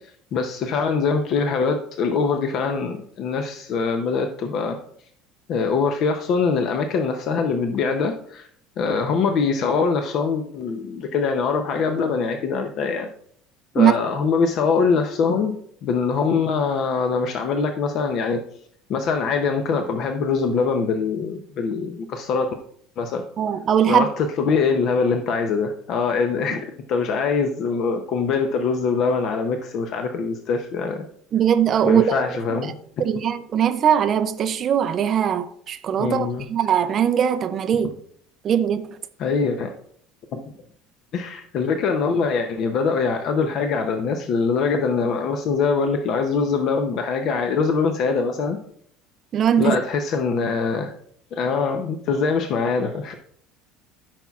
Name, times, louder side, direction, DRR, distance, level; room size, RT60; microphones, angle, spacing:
voice 1, 0.3-4.8 5.5-8.5 8.8-13.1 13.7-15.5 15.8-18.4 18.9-22.5 23.0-23.2 23.9-31.1 31.8-33.0 36.0-36.5 39.2-39.7 40.3-40.4 41.1-48.6 49.6-50.9 51.3-53.1, left 5 dB, 40° left, 0.6 m, -23 dB
voice 2, 23.4-24.0 31.3-32.1 33.0-37.9 38.4-38.9 49.3-49.8, right 9 dB, 30° right, 0.4 m, -20 dB
13.0 x 5.8 x 2.4 m
cardioid pair, 170°, 0 cm